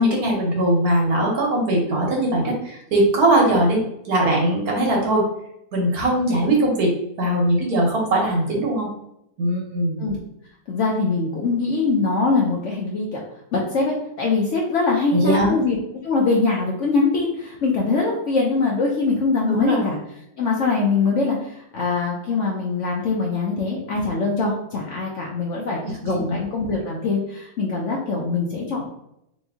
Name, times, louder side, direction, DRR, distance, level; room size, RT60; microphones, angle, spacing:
voice 1, 0.0-3.8 4.0-5.3 5.7-8.9 9.4-10.0 15.1-15.5 19.5-19.8 26.0-26.2, right 1 dB, 60° right, -1 dB, 1.3 m, -20 dB
voice 2, 10.7-13.2 13.5-15.8 16.0-20.0 20.4-28.8, left 4 dB, 85° left, -2 dB, 0.6 m, -22 dB
3.1 x 3.0 x 3.5 m, 0.79 s
omnidirectional pair, 2.0 m